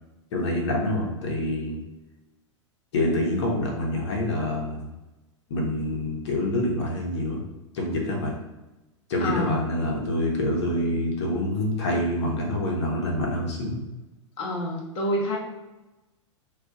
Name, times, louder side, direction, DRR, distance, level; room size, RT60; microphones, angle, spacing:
voice 1, 0.3-1.8 2.9-4.9 5.5-7.4 7.7-8.3 9.1-13.8, left 1 dB, 60° left, -1 dB, 1.0 m, -26 dB
voice 2, 9.2-9.6 14.4-15.4, left 1 dB, 35° left, -2 dB, 0.9 m, -27 dB
2.4 x 2.4 x 3.7 m, 1.0 s
figure-of-eight pair, 100°, 16 cm